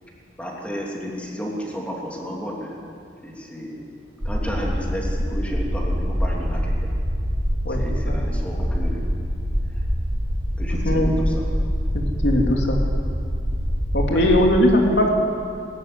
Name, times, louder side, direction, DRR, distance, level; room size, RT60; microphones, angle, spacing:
voice 1, 0.4-2.7 3.2-3.8 4.2-6.9 7.7-9.0 10.6-11.5 14.1-14.3, equal, 5° left, -2 dB, 3.0 m, -32 dB
sound 1, 4.2-14.4, equal, 70° right, 4.5 m, -24 dB
voice 2, 10.8-11.2 11.9-12.8 13.9-15.1, left 1 dB, 70° left, 0 dB, 3.1 m, -19 dB
20.0 x 13.5 x 9.5 m, 2.3 s
head